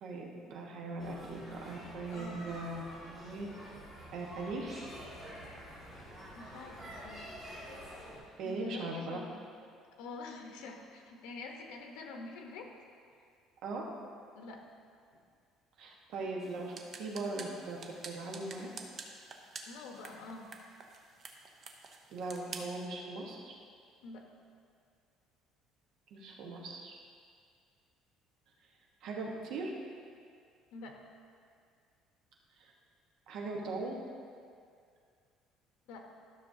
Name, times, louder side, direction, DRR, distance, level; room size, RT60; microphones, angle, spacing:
voice 1, 0.0-3.5 4.1-4.8 8.4-9.2 13.6-13.8 15.8-17.8 18.0-18.7 22.1-23.5 26.1-27.0 29.0-29.7 32.6-32.7 33.3-33.9, right 3 dB, 60° right, -1 dB, 1.2 m, -39 dB
sound 1, 1.0-8.2, equal, ahead, 2.1 m, -48 dB
voice 2, 2.1-2.4 6.3-7.3 8.4-9.4 10.0-12.7 14.3-14.6 19.7-20.5 24.0-24.2 30.7-31.0 35.9-36.1, left 3 dB, 85° left, 2 dB, 1.0 m, -46 dB
sound 2, 16.4-22.8, right 4 dB, 35° right, 0.7 m, -49 dB
12.5 x 6.4 x 2.7 m, 2.2 s
cardioid pair, 155°, 0 cm